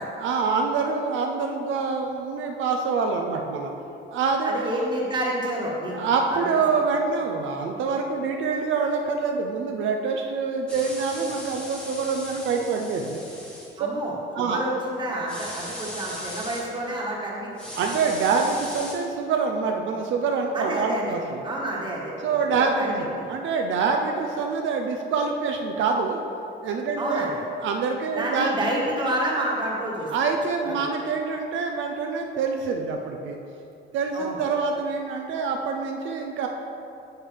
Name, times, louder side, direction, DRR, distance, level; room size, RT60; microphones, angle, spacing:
voice 1, 0.2-3.7 4.1-4.9 5.9-13.2 13.8-13.9 14.3-14.6 17.8-21.4 22.2-26.2 26.6-27.3 27.6-28.6 30.1-33.4 33.9-36.5, right 4 dB, 70° right, 2 dB, 0.7 m, -26 dB
voice 2, 4.4-6.0 6.3-6.5 13.8-17.5 20.5-21.2 21.4-22.1 22.6-23.3 27.0-27.5 28.1-30.1 30.7-30.8 34.1-34.4, right 1 dB, 20° right, -3 dB, 1.5 m, -29 dB
sound 1, 10.7-13.7 15.3-16.6 17.6-18.9, equal, 5° left, 1.4 m, -38 dB
9.9 x 7.4 x 3.4 m, 2.6 s
cardioid pair, 180°, 20 cm